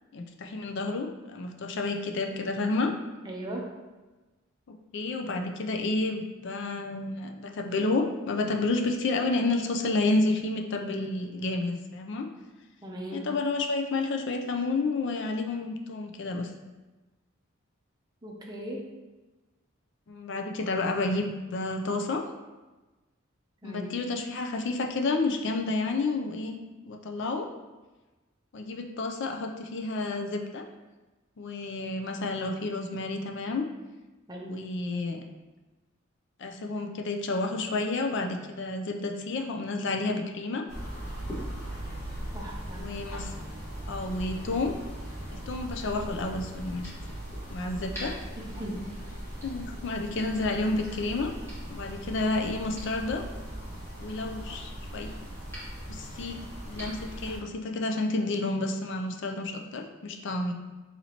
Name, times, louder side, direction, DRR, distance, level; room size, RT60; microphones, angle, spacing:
voice 1, 0.1-2.9 4.9-12.3 13.1-16.5 20.1-22.2 23.6-27.5 28.5-30.6 31.4-33.6 34.5-35.2 36.4-40.6 42.8-43.3 43.9-44.7 45.3-46.9 47.5-48.1 49.4-51.3 51.7-53.2 54.0-55.1 55.9-60.5, left 2 dB, 60° left, 4 dB, 0.4 m, -30 dB
voice 2, 3.3-3.7 12.8-13.3 18.2-18.9 23.6-23.9 34.3-34.6 42.3-42.9 48.4-48.8, right 1 dB, 20° right, -1 dB, 0.6 m, -38 dB
sound 1, 40.7-57.4, equal, 15° left, 1.5 m, -39 dB
4.2 x 4.1 x 2.8 m, 1.2 s
head